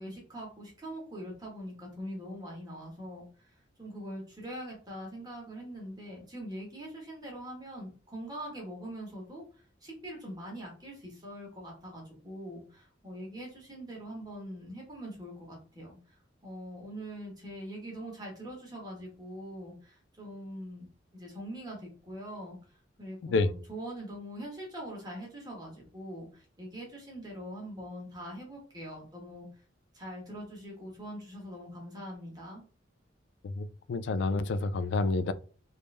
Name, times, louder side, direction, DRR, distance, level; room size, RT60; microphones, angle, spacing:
voice 1, 0.0-20.9 21.1-29.5 29.9-32.6, equal, 20° right, 1.4 m, -43 dB
voice 2, 33.4-35.3, left 3 dB, 65° left, 0.3 m, -29 dB
3.4 x 2.6 x 3.3 m
head